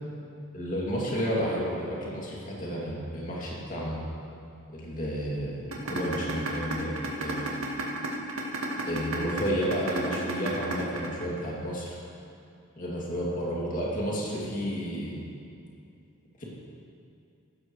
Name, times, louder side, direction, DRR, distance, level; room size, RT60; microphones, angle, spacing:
voice 1, 0.5-4.0 4.7-7.5 8.9-12.0 12.8-15.2 16.4-16.5, equal, 35° left, -5 dB, 2.6 m, -31 dB
sound 1, 5.7-11.7, right 2 dB, 85° right, 1.7 m, -31 dB
15.5 x 13.0 x 3.2 m, 2.5 s
head